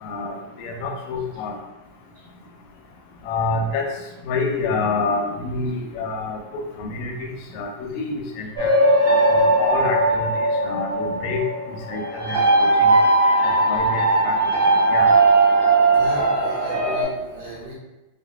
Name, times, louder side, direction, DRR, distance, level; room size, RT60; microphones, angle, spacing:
voice 1, 0.0-1.5 3.3-3.8 4.3-6.4 6.8-7.1 7.5-7.7 7.9-8.7 9.3-11.4 11.9-12.9 13.4-14.4 14.9-15.1, left 3 dB, 80° left, 1 dB, 1.8 m, -27 dB
sound 1, 8.6-17.0, right 2 dB, 60° right, 1.3 m, -18 dB
voice 2, 15.9-17.7, right 1 dB, 80° right, -3 dB, 1.6 m, -35 dB
4.8 x 2.4 x 2.2 m, 1.0 s
omnidirectional pair, 3.4 m